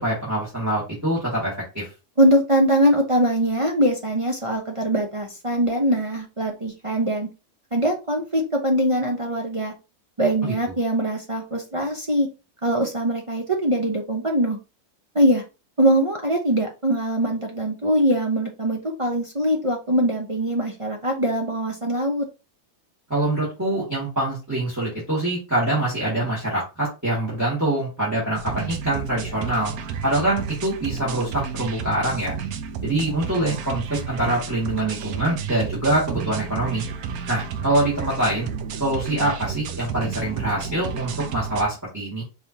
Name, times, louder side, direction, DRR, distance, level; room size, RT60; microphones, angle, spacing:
voice 1, 0.0-1.9 10.4-10.5 23.1-29.7 30.0-32.3 32.8-36.8 37.3-38.5 38.8-42.2, right 1 dB, 10° right, -6 dB, 1.9 m, -24 dB
voice 2, 2.2-7.3 7.7-9.7 10.2-12.3 12.6-14.6 15.1-15.4 15.8-22.3, right 1 dB, 35° right, 1 dB, 0.5 m, -22 dB
sound 1, 28.4-41.6, right 6 dB, 75° right, 1.1 m, -32 dB
5.0 x 3.4 x 2.8 m, 0.28 s
omnidirectional pair, 1.6 m